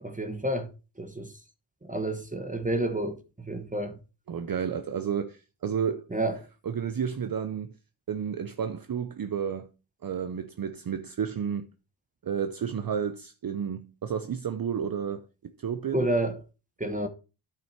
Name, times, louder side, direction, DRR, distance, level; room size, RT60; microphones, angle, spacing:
voice 1, 0.0-0.7 1.0-1.3 1.9-3.2 3.4-3.9 6.1-6.4 15.9-16.4 16.8-17.1, right 1 dB, 15° right, 1.1 m, -29 dB
voice 2, 4.3-6.4 6.6-7.7 8.1-9.7 10.0-11.7 12.2-16.0, right 7 dB, 45° right, 0.7 m, -31 dB
9.2 x 5.9 x 4.4 m
cardioid pair, 70°, 49 cm